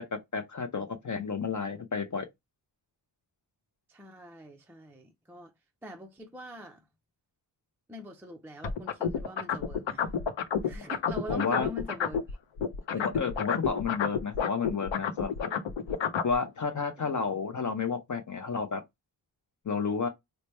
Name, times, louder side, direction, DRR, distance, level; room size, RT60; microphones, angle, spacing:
voice 1, 0.0-2.3 11.3-11.7 12.9-15.5 16.2-18.8 19.7-20.1, left 5 dB, 45° left, 0.5 m, -31 dB
voice 2, 3.9-5.5 5.8-6.8 7.9-10.1 10.6-13.1 17.0-17.1, equal, 5° right, 0.3 m, -44 dB
sound 1, 8.6-12.3 12.6-16.3, left 7 dB, 85° left, 0.7 m, -30 dB
3.2 x 2.0 x 4.2 m
wide cardioid pair, 150°, 44 cm